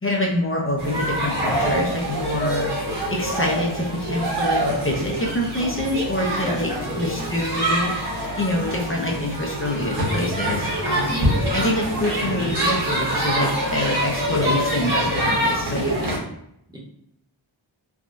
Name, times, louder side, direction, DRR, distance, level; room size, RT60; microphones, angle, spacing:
voice 1, 0.0-2.7 3.1-6.7 7.0-7.9 8.4-11.2 11.5-16.2, left 1 dB, 30° left, -2 dB, 0.6 m, -26 dB
sound 1, 0.8-16.2, right 1 dB, 55° right, 1.3 m, -25 dB
voice 2, 6.4-7.2 12.2-12.5 16.7-16.8, equal, 10° right, -4 dB, 1.0 m, -32 dB
3.5 x 2.2 x 2.5 m, 0.76 s
wide cardioid pair, 65°, 48 cm